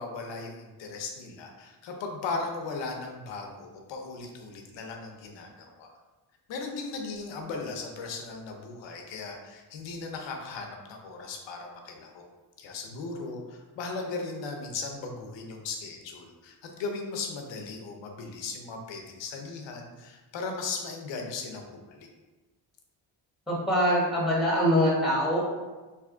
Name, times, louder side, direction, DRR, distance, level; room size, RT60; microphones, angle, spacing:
voice 1, 0.0-5.9 6.5-12.2 12.6-22.1, left 4 dB, 85° left, 3 dB, 0.8 m, -37 dB
voice 2, 23.5-25.4, equal, ahead, -4 dB, 1.1 m, -24 dB
3.4 x 2.8 x 3.7 m, 1.2 s
cardioid pair, 115°, 43 cm